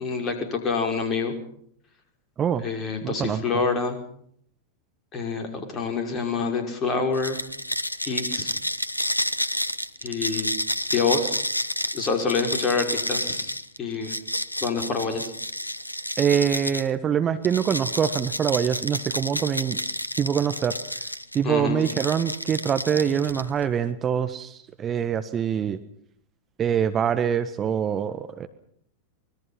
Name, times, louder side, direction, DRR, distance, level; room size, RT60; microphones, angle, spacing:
voice 1, 0.0-1.3 2.6-4.0 5.1-7.4 8.0-8.5 10.0-10.5 10.9-11.4 11.9-14.1 14.6-15.3 21.4-21.8, left 4 dB, 30° left, 5 dB, 5.7 m, -27 dB
voice 2, 3.0-3.4 16.2-19.8 20.2-20.7 21.3-25.8 26.6-28.5, right 8 dB, 25° right, 10 dB, 1.4 m, -24 dB
sound 1, 7.1-16.9 17.4-21.4 21.8-23.6, left 1 dB, 85° left, 0.9 m, -30 dB
25.5 x 21.5 x 5.8 m, 0.65 s
figure-of-eight pair, 90°, 0 cm